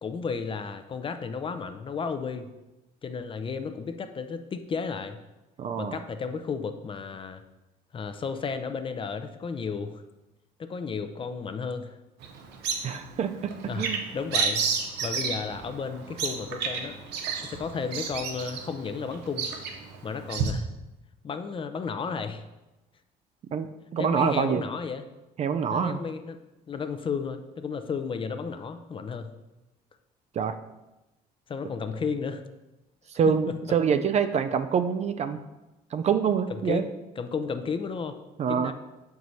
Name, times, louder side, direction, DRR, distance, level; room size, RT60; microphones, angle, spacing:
voice 1, 0.0-2.5 3.0-5.2 5.8-7.4 7.9-10.0 10.6-12.0 13.7-13.9 14.1-14.7 15.0-17.0 17.4-19.5 20.0-20.7 21.2-22.4 24.0-25.0 25.7-26.4 26.7-29.3 31.5-32.4 36.5-36.9 37.2-38.2 38.5-38.7, left 5 dB, 30° left, 9 dB, 0.5 m, -33 dB
voice 2, 5.6-6.0 12.8-14.0 23.5-24.6 25.4-26.0 30.3-30.6 33.1-35.4 35.9-36.8 38.4-38.7, right 7 dB, 40° right, 9 dB, 0.4 m, -26 dB
Bird vocalization bird call bird song, 12.2-20.5, right 5 dB, 80° right, 0.8 m, -32 dB
6.3 x 4.7 x 4.1 m, 1.0 s
cardioid pair, 110°, 17 cm